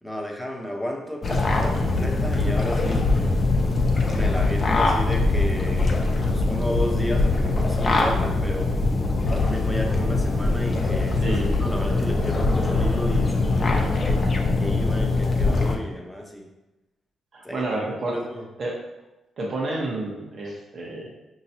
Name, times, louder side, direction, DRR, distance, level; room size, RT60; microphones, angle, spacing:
voice 1, 0.0-3.1 4.1-8.8 9.2-16.5 17.4-18.5, equal, ahead, 1 dB, 0.9 m, -33 dB
sound 1, 1.2-15.8, left 3 dB, 40° left, 0.7 m, -22 dB
voice 2, 11.1-11.6 17.3-18.2 18.6-18.8 19.4-21.2, right 2 dB, 55° right, -2 dB, 1.1 m, -30 dB
5.5 x 3.0 x 2.8 m, 1.0 s
cardioid pair, 70°, 0 cm